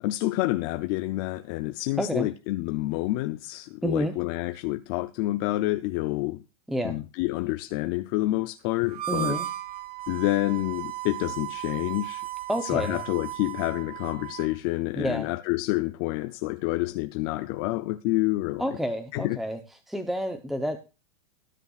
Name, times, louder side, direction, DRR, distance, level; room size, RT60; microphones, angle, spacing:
voice 1, 0.0-6.4 6.8-9.4 10.1-12.2 12.6-18.6 19.1-19.4, left 18 dB, 40° left, 0.5 m, -28 dB
voice 2, 2.0-2.3 3.8-4.1 6.7-7.0 9.1-9.5 12.5-13.0 15.0-15.3 18.6-19.6 19.9-20.8, equal, ahead, 0.8 m, -29 dB
Harmonica, 8.9-14.6, right 13 dB, 75° right, 1.5 m, -36 dB
19.0 x 10.0 x 2.4 m
supercardioid pair, 150°, 19 cm